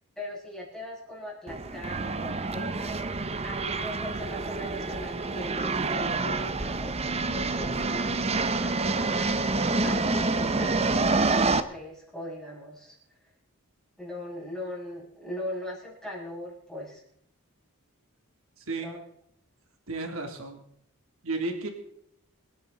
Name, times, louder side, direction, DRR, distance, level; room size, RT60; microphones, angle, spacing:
voice 1, 0.2-8.2 8.6-12.9 14.0-17.0 18.8-19.0, left 1 dB, 5° left, -6 dB, 6.9 m, -40 dB
sound 1, 1.5-11.6, right 3 dB, 30° right, 0.8 m, -27 dB
voice 2, 18.6-18.9 19.9-20.6 21.2-21.7, right 3 dB, 65° right, 4 dB, 3.1 m, -33 dB
27.0 x 10.5 x 4.1 m, 0.71 s
head